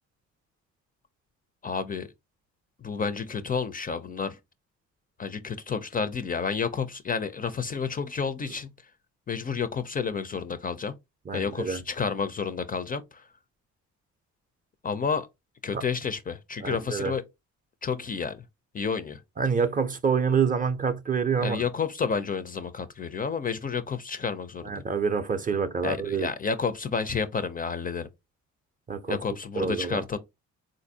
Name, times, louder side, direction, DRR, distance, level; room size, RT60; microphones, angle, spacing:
voice 1, 1.6-2.1 2.8-4.4 5.2-8.7 9.3-11.0 11.3-13.3 14.8-15.3 15.6-17.2 17.8-18.4 18.7-19.2 21.4-24.8 25.8-28.1 29.1-30.2, left 5 dB, 30° left, 0.4 m, -30 dB
voice 2, 11.3-11.8 15.7-15.8 16.6-17.1 19.4-21.6 24.6-26.3 28.9-29.2 29.6-30.0, right 6 dB, 30° right, 0.5 m, -27 dB
3.8 x 2.5 x 2.6 m
cardioid pair, 90°, 30 cm